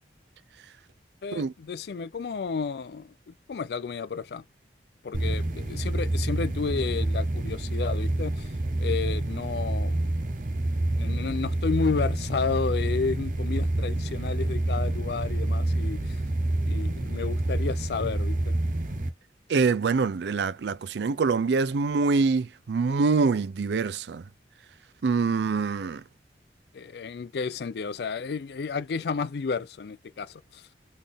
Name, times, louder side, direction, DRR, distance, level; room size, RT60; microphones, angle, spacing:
voice 1, 1.2-3.1 3.5-4.4 5.0-8.5 8.8-10.0 10.9-16.2 16.7-18.5 26.7-30.6, left 5 dB, 65° left, 0.4 m, -31 dB
sound 1, 5.1-19.1, right 1 dB, 45° right, 0.8 m, -28 dB
voice 2, 19.5-24.2 25.0-26.0, right 4 dB, 75° right, 0.4 m, -25 dB
3.9 x 3.6 x 3.5 m
head